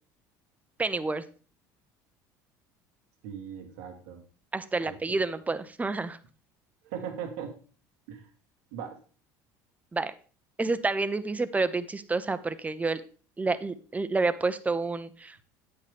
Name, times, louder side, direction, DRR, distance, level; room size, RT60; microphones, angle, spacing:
voice 1, 0.8-1.2 4.5-6.2 9.9-10.1 10.6-13.0 13.4-15.4, right 3 dB, 15° right, 12 dB, 0.8 m, -29 dB
voice 2, 3.2-4.2 4.8-5.2 6.8-7.5 8.1-8.3 8.7-9.0, right 8 dB, 85° right, 4 dB, 1.5 m, -39 dB
8.9 x 8.4 x 3.5 m, 0.39 s
supercardioid pair, 90°, 9 cm